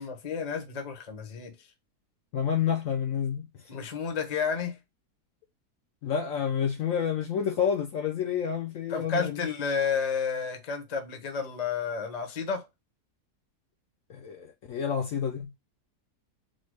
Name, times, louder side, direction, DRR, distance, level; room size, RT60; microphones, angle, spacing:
voice 1, 0.0-1.7 3.7-4.8 8.9-12.7, left 5 dB, 35° left, 0.8 m, -31 dB
voice 2, 2.3-3.5 6.0-9.4 14.1-15.6, left 8 dB, 65° left, 1.0 m, -29 dB
4.3 x 2.2 x 4.6 m
omnidirectional pair, 1.7 m